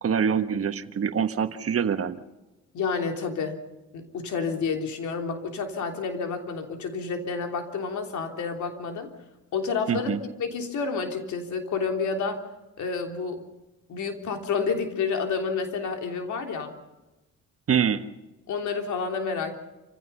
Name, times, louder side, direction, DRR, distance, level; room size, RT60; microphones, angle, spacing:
voice 1, 0.0-2.2 9.9-10.2 17.7-18.0, right 7 dB, 50° right, 10 dB, 1.4 m, -25 dB
voice 2, 2.7-3.6 3.9-9.1 9.5-10.1 10.4-12.4 12.8-13.4 13.9-16.8 18.5-19.5, left 5 dB, 75° left, 4 dB, 3.3 m, -29 dB
28.5 x 16.0 x 5.6 m, 1.0 s
cardioid pair, 90°, 30 cm